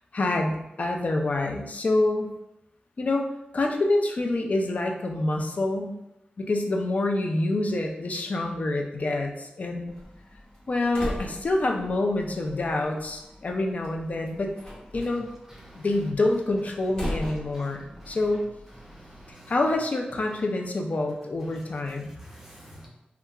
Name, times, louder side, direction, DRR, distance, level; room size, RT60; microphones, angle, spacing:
voice 1, 0.1-0.5 0.8-2.3 3.0-3.3 3.5-6.0 6.4-9.9 10.7-14.5 14.9-15.3 15.7-18.5 19.5-22.1, left 2 dB, 50° left, 2 dB, 0.3 m, -26 dB
Slam, 9.9-19.3, equal, 30° left, 0.8 m, -40 dB
voice 2, 18.8-19.5 21.5-21.6 22.2-22.9, right 1 dB, 15° right, -3 dB, 0.4 m, -48 dB
2.8 x 2.2 x 2.3 m, 0.88 s
wide cardioid pair, 90°, 3 cm